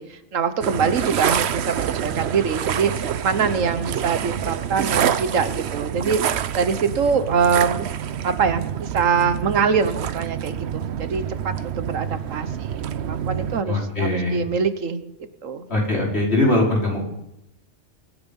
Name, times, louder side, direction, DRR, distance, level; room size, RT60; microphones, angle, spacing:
voice 1, 0.0-7.9 8.2-12.8 13.1-15.0 15.4-15.7, right 6 dB, 80° right, 11 dB, 1.5 m, -24 dB
sound 1, 0.6-13.6, right 9 dB, 60° right, 0.9 m, -27 dB
voice 2, 13.6-14.4 15.7-17.0, left 2 dB, 55° left, -3 dB, 5.4 m, -21 dB
24.0 x 9.8 x 5.5 m, 0.82 s
omnidirectional pair, 1.3 m